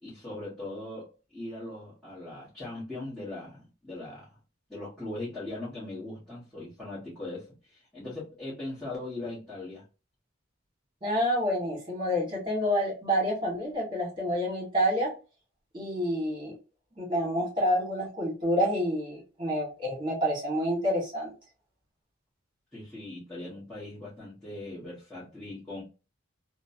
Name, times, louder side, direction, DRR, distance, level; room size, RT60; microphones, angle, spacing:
voice 1, 0.0-4.3 4.7-9.8 22.7-25.8, left 2 dB, ahead, 1.2 m, -40 dB
voice 2, 11.0-15.1 15.7-16.5 17.0-21.3, equal, 25° right, 1.5 m, -28 dB
3.1 x 2.0 x 2.6 m
head